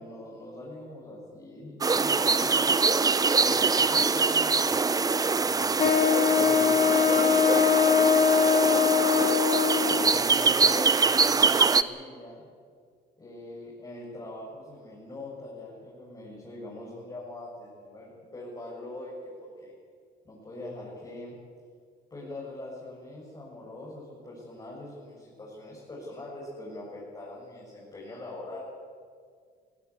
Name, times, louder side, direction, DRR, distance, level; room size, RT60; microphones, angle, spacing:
voice 1, 0.0-2.8 3.4-9.3 9.9-12.5 13.2-19.7 20.2-21.3 22.1-28.6, left 1 dB, 25° left, -6 dB, 6.9 m, -42 dB
sound 1, 1.8-11.8, right 4 dB, 20° right, 0.7 m, -24 dB
Wind instrument woodwind instrument, 5.8-10.2, left 8 dB, 45° left, 0.8 m, -22 dB
21.5 x 16.0 x 8.4 m, 2.1 s
cardioid pair, 110°, 17 cm